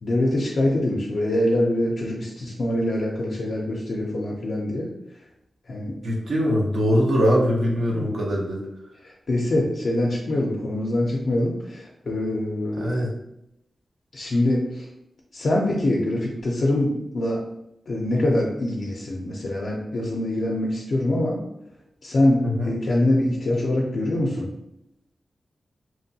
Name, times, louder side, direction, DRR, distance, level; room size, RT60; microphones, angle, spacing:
voice 1, 0.0-4.9 5.7-6.0 7.9-8.2 9.0-13.1 14.1-14.9 15.3-17.4 17.9-21.4 22.0-24.5, left 1 dB, 60° left, -3 dB, 0.4 m, -24 dB
voice 2, 6.0-8.6 12.7-13.1 22.4-22.7, equal, 70° right, -2 dB, 0.6 m, -22 dB
2.9 x 2.2 x 2.7 m, 0.82 s
wide cardioid pair, 115°, 0 cm